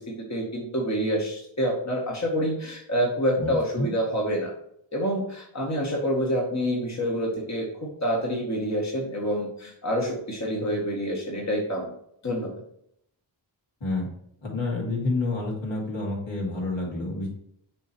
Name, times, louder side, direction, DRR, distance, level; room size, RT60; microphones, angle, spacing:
voice 1, 0.0-4.5 4.9-11.9 12.2-12.5, equal, 35° left, -2 dB, 1.7 m, -27 dB
voice 2, 3.4-3.9 13.8-14.1 14.4-17.3, left 2 dB, 65° left, -3 dB, 2.5 m, -29 dB
7.0 x 3.2 x 4.5 m, 0.71 s
cardioid pair, 55°, 48 cm